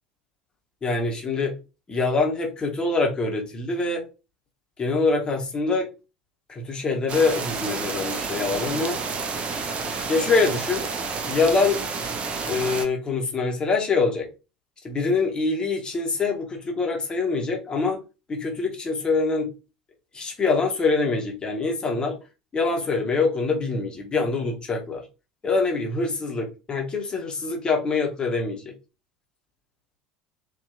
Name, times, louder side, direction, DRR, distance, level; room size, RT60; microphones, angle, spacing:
voice 1, 0.8-1.6 1.9-4.0 4.8-5.9 6.5-9.0 10.1-10.9 11.3-11.8 12.5-14.3 14.8-18.0 18.3-19.5 20.1-22.2 22.5-25.0 25.4-28.7, left 3 dB, 25° left, 0.8 m, -24 dB
sound 1, 7.1-12.9, right 4 dB, 30° right, 0.5 m, -30 dB
2.7 x 2.2 x 2.3 m
figure-of-eight pair, 70°, 4 cm